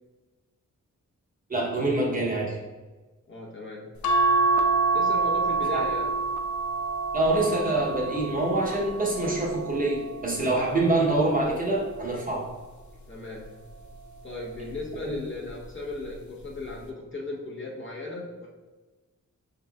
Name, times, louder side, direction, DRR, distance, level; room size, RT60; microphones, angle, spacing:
voice 1, 1.5-2.6 5.7-5.8 7.1-12.5 15.0-15.1, right 2 dB, 25° right, -4 dB, 0.9 m, -25 dB
voice 2, 3.3-3.9 4.9-6.1 13.1-13.5 14.2-18.5, left 2 dB, 40° left, -4 dB, 0.9 m, -36 dB
sound 1, 4.0-10.7 11.3-12.7 13.9-14.4 14.7-14.8, right 3 dB, 70° left, 0.5 m, -27 dB
5.3 x 3.9 x 2.3 m, 1.2 s
wide cardioid pair, 150°, 31 cm